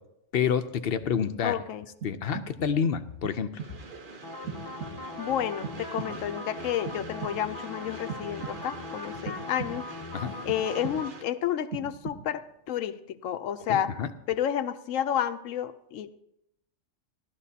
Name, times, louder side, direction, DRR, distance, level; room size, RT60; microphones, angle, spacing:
voice 1, 0.3-1.6 2.0-3.6 10.1-10.4 13.7-14.1, left 7 dB, 55° left, 10 dB, 0.8 m, -28 dB
voice 2, 1.4-1.9 5.2-9.8 10.5-13.9 14.3-16.1, left 10 dB, 85° left, 11 dB, 1.0 m, -30 dB
sound 1, 2.0-2.8 3.2-4.0 4.5-5.3 5.6-6.4 6.9-7.7 8.1-8.9 9.3-10.1 10.5-11.3 11.7-12.5, right 6 dB, 85° right, 1.5 m, -41 dB
Train, 3.6-11.2, right 3 dB, 45° right, 1.1 m, -45 dB
sound 2, 4.2-11.1, left 3 dB, 25° left, 0.6 m, -40 dB
17.0 x 12.5 x 2.8 m, 0.81 s
omnidirectional pair, 1.3 m